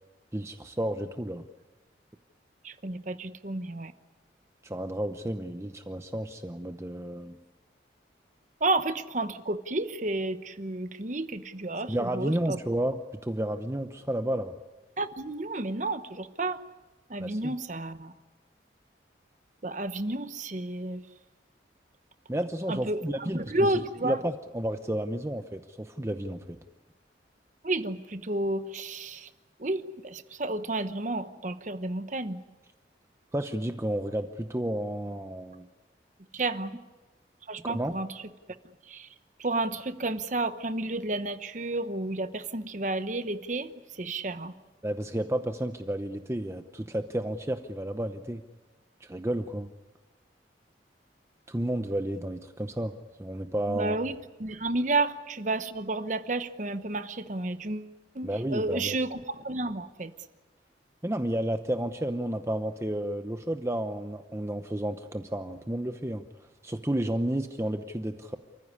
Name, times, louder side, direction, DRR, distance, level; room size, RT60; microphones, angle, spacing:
voice 1, 0.3-1.4 4.6-7.4 11.9-14.6 17.2-17.5 22.3-26.6 33.3-35.7 37.6-37.9 44.8-48.4 49.0-49.7 51.5-52.9 53.2-54.0 58.2-59.0 61.0-66.2 66.6-68.4, right 1 dB, 15° right, 7 dB, 0.8 m, -31 dB
voice 2, 2.6-3.9 8.6-12.6 15.0-16.6 17.1-18.1 19.6-21.0 22.7-24.2 27.6-29.3 29.6-32.4 36.3-36.7 37.5-38.2 38.9-39.1 39.4-44.5 53.7-54.1 54.4-60.1, right 2 dB, 45° right, 10 dB, 1.0 m, -31 dB
29.0 x 15.0 x 9.7 m, 1.2 s
head